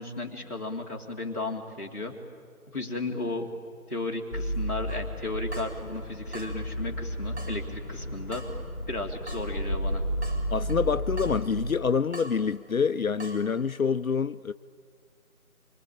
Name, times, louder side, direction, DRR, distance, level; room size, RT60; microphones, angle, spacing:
voice 1, 0.0-2.1 2.7-3.5 3.9-8.4 8.9-10.0, left 2 dB, 10° left, 1.8 m, -34 dB
sound 1, 4.3-11.6, equal, 10° right, 4.9 m, -33 dB
Water tap faucet / Drip, 4.9-13.5, right 2 dB, 45° right, 4.4 m, -48 dB
voice 2, 10.5-14.5, left 6 dB, 65° left, 0.6 m, -26 dB
25.5 x 24.0 x 8.9 m
figure-of-eight pair, 170°, 45 cm